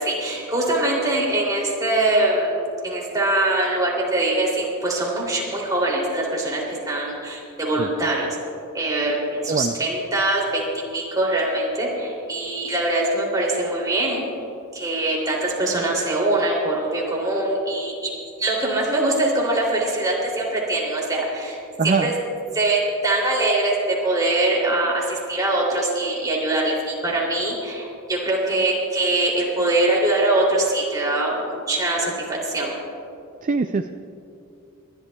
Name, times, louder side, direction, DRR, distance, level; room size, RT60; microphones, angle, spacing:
voice 1, 0.0-8.3 8.7-10.7 10.9-14.3 14.7-18.1 18.4-21.6 21.8-22.1 22.5-23.7 24.0-32.1 32.4-32.7, right 2 dB, 15° right, -4 dB, 2.8 m, -23 dB
voice 2, 21.8-22.1 33.4-34.0, right 4 dB, 35° right, 7 dB, 0.4 m, -23 dB
29.5 x 11.5 x 2.3 m, 2.6 s
head